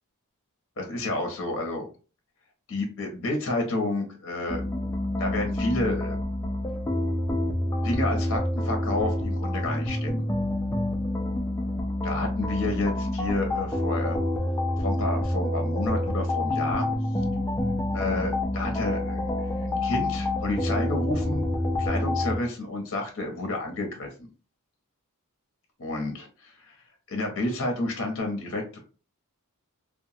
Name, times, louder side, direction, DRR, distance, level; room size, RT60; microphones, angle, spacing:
voice 1, 0.8-1.8 2.7-4.6 5.2-6.2 7.8-10.2 12.0-14.2 14.8-16.9 17.9-21.4 21.8-24.3 25.8-26.8 27.1-28.8, left 2 dB, 60° left, 3 dB, 0.8 m, -30 dB
sound 1, 4.5-22.4, left 1 dB, 15° left, 0.4 m, -28 dB
2.8 x 2.2 x 2.7 m, 0.35 s
head